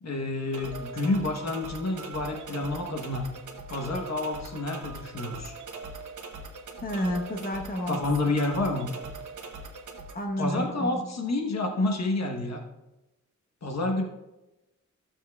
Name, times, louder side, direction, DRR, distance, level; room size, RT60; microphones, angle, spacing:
voice 1, 0.0-3.2 3.7-5.5 7.9-8.9 10.4-12.6 13.6-14.0, left 2 dB, 60° left, 2 dB, 1.2 m, -29 dB
sound 1, 0.5-10.1, right 3 dB, 80° right, 1.0 m, -41 dB
voice 2, 6.8-8.0 10.1-11.0, equal, 30° left, 3 dB, 1.1 m, -30 dB
14.5 x 7.2 x 2.3 m, 1.0 s
wide cardioid pair, 105°, 30 cm